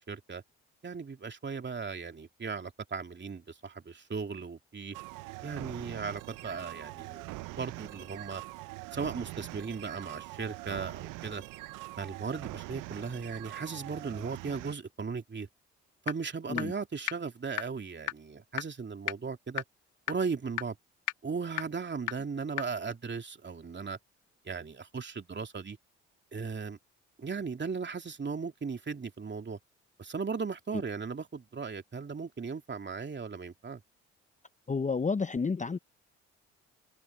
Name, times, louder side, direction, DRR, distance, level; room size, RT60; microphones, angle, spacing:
voice 1, 0.1-0.4 0.8-5.0 5.4-8.4 8.9-11.4 12.0-15.5 16.0-19.6 20.1-20.8 21.2-24.0 24.4-25.8 26.3-26.8 27.2-29.6 30.0-33.8, right 5 dB, 35° right, 2.8 m, -37 dB
sound 1, 4.9-14.7, right 21 dB, 75° right, 0.9 m, -43 dB
sound 2, 16.1-16.2 16.6-16.7 17.1-17.2 17.6-17.7 18.1-18.2 18.6-18.7 19.1-19.2 19.6-19.7 20.1-20.2 20.6-20.7 21.1-21.2 21.6-21.7 22.1-22.2 22.6-22.7, left 19 dB, 60° left, 0.5 m, -30 dB
voice 2, 34.7-35.8, left 4 dB, 20° left, 0.9 m, -30 dB
hypercardioid pair, 50°, 33 cm